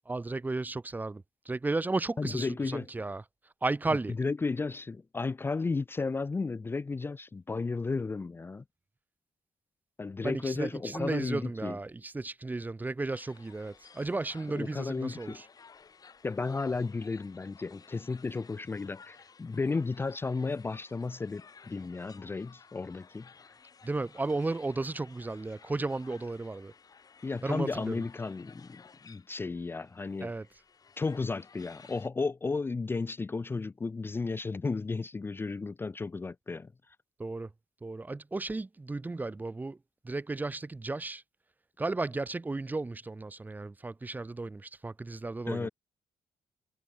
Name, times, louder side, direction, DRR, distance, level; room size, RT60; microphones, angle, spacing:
voice 1, 0.1-3.2 3.6-4.1 10.2-15.5 23.8-26.7 27.4-28.0 30.2-30.5 37.2-37.5 37.8-39.8 40.0-41.2 41.8-45.7, right 3 dB, 15° right, 1.2 m, -34 dB
voice 2, 2.2-2.9 4.2-8.6 10.0-11.8 14.5-15.4 16.2-23.5 27.2-30.3 31.0-36.7 45.5-45.7, left 4 dB, 20° left, 0.7 m, -34 dB
sound 1, 13.1-32.1, left 5 dB, 35° left, 7.1 m, -56 dB
cardioid pair, 125°, 10 cm